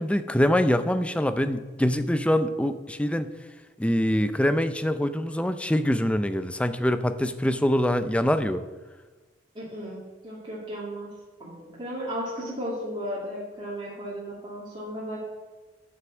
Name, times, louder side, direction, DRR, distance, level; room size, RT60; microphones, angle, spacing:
voice 1, 0.0-3.3 3.8-8.6, equal, 5° left, 10 dB, 0.5 m, -24 dB
voice 2, 9.5-11.1 11.4-15.2, equal, 25° right, -7 dB, 2.4 m, -35 dB
9.5 x 6.0 x 7.9 m, 1.3 s
head